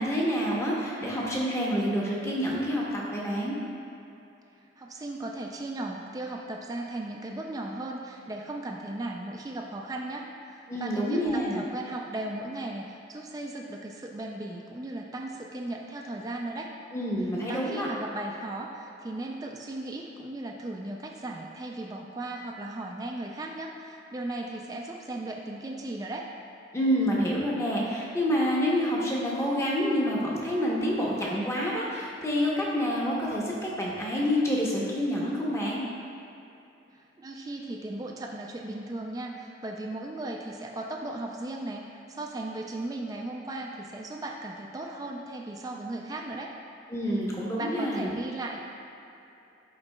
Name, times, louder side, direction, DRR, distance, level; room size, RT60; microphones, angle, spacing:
voice 1, 0.0-3.6 10.7-11.6 16.9-17.9 26.7-35.8 46.9-48.1, equal, 15° left, -5 dB, 0.8 m, -28 dB
voice 2, 4.8-16.7 17.5-26.3 37.2-46.5 47.6-48.6, right 2 dB, 20° right, 0 dB, 0.3 m, -36 dB
11.5 x 3.9 x 2.2 m, 2.8 s
head